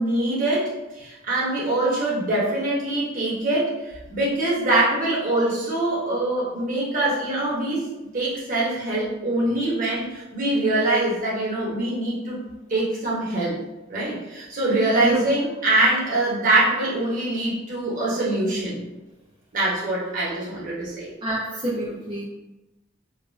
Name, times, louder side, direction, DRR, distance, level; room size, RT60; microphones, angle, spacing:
voice 1, 0.0-3.8 4.1-7.8 8.1-12.4 12.7-13.6 13.9-18.8 19.5-21.1, right 2 dB, 45° right, -6 dB, 0.9 m, -23 dB
voice 2, 21.2-22.2, right 1 dB, 25° right, -6 dB, 0.3 m, -27 dB
2.3 x 2.1 x 3.1 m, 1.1 s
head